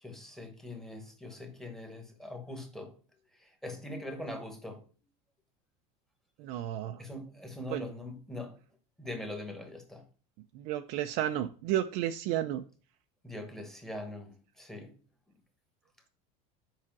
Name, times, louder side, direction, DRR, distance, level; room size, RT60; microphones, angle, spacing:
voice 1, 0.0-3.0 3.4-4.8 7.0-8.6 9.0-10.1 13.2-14.9, left 1 dB, ahead, 1.1 m, -42 dB
voice 2, 6.4-7.0 7.7-7.9 10.5-12.6, right 12 dB, 40° right, 0.4 m, -32 dB
7.4 x 4.9 x 5.9 m
cardioid pair, 180°, 19 cm